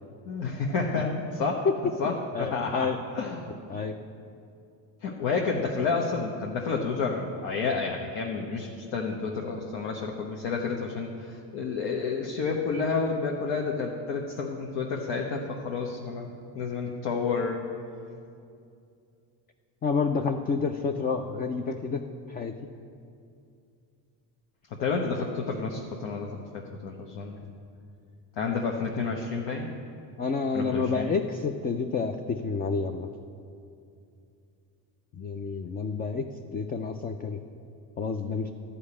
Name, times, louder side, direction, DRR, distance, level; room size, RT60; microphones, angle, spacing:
voice 1, 0.3-1.7 2.0-2.1 2.4-3.4 5.0-17.6 24.7-27.4 28.4-29.7 30.5-31.1, left 4 dB, 65° left, 0 dB, 1.1 m, -30 dB
voice 2, 2.0-3.0 3.7-4.0 19.8-22.6 30.2-33.1 35.1-37.4 38.0-38.5, left 4 dB, 20° left, 6 dB, 0.3 m, -29 dB
11.5 x 5.6 x 8.5 m, 2.5 s
supercardioid pair, 100°, 48 cm